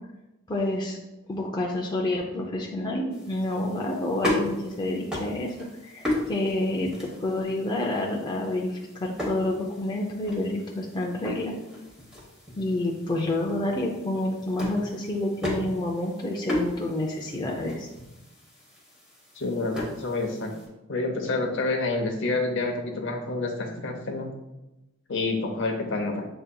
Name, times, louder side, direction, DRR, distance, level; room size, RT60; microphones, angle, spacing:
voice 1, 0.5-1.0 1.3-5.5 5.8-11.5 12.6-17.9, left 1 dB, 20° left, -1 dB, 0.4 m, -29 dB
sound 1, 3.1-20.7, left 1 dB, 5° right, 1.1 m, -36 dB
voice 2, 19.4-20.5 20.9-24.3 25.1-26.3, left 3 dB, 55° left, 2 dB, 0.8 m, -28 dB
7.6 x 2.7 x 2.2 m, 0.99 s
head